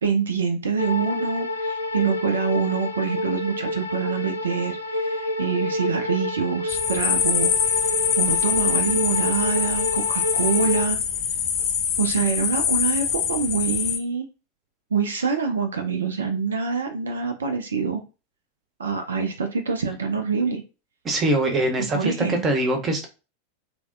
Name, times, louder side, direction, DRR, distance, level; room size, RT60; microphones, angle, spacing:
voice 1, 0.0-7.5 8.2-11.0 12.0-14.3 14.9-18.0 18.8-20.6 21.9-22.5, right 5 dB, 70° right, 6 dB, 0.4 m, -25 dB
sound 1, 0.8-10.9, left 2 dB, 80° left, 0.5 m, -28 dB
field pendeli, 6.7-14.0, left 8 dB, 40° left, 0.7 m, -24 dB
voice 2, 21.0-23.1, right 1 dB, 25° right, 5 dB, 0.7 m, -23 dB
3.1 x 2.1 x 2.5 m, 0.31 s
figure-of-eight pair, 90°, 0 cm